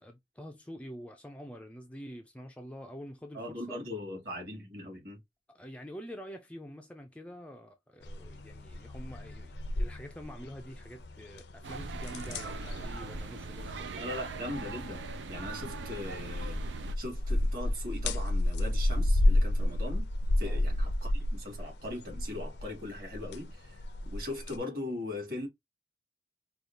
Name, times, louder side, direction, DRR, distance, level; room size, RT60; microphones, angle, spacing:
voice 1, 0.0-3.8 5.5-14.1 20.4-20.6, equal, 5° left, 0.4 m, -46 dB
voice 2, 3.3-5.2 14.0-16.6 17.0-20.1 20.4-25.5, left 1 dB, 50° right, 2.3 m, -40 dB
sound 1, 8.0-24.6, left 1 dB, 70° left, 0.6 m, -32 dB
sound 2, 11.6-16.9, right 3 dB, 85° right, 0.5 m, -41 dB
4.8 x 2.3 x 2.7 m
head